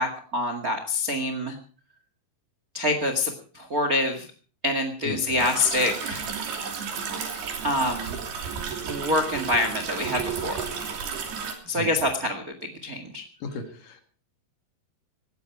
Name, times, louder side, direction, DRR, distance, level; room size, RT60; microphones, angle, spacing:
voice 1, 0.0-1.6 2.7-4.3 4.6-6.2 7.6-8.2 8.8-10.7 11.6-13.2, left 2 dB, 45° right, 6 dB, 1.2 m, -26 dB
voice 2, 5.0-5.5 11.7-11.9 13.4-14.0, left 3 dB, 55° left, 6 dB, 3.0 m, -35 dB
sound 1, 5.4-11.5, right 6 dB, 60° right, 4.8 m, -32 dB
18.5 x 14.0 x 4.7 m, 0.42 s
omnidirectional pair, 5.3 m